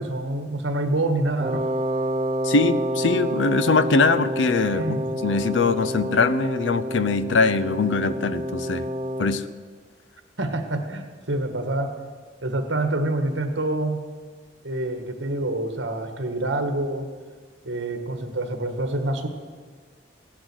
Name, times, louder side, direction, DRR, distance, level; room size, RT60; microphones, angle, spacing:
voice 1, 0.0-1.6 4.7-5.0 10.4-11.9 12.4-14.0 14.6-17.1 17.6-19.3, right 2 dB, 80° right, 6 dB, 1.6 m, -26 dB
Wind instrument woodwind instrument, 1.4-9.5, equal, 40° right, 0.7 m, -28 dB
voice 2, 2.4-8.9 9.2-9.5, left 4 dB, 85° left, 14 dB, 0.7 m, -22 dB
16.0 x 10.5 x 6.3 m, 1.5 s
head